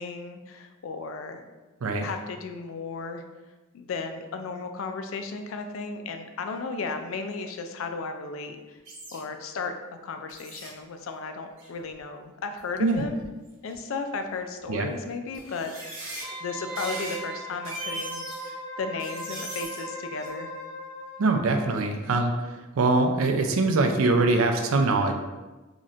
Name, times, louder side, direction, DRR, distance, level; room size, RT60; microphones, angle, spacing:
voice 1, 0.0-1.4 2.0-3.2 3.7-8.6 9.1-9.7 10.0-13.2 13.6-18.2 18.8-20.5, left 4 dB, 70° left, 6 dB, 0.4 m, -34 dB
sound 1, 8.9-9.2 10.3-10.7 11.6-11.8 12.6-12.7 12.9-13.8 14.6-14.7 15.3-16.2 16.8-17.2 17.5-18.5 19.0-19.8 20.2-20.3, right 1 dB, 60° right, 1.2 m, -39 dB
Wind instrument woodwind instrument, 16.2-21.8 22.1-22.2, right 1 dB, 30° right, 1.0 m, -39 dB
voice 2, 21.2-22.3 22.8-25.1, right 3 dB, 85° right, 5 dB, 0.5 m, -23 dB
2.9 x 2.5 x 4.1 m, 1.2 s
head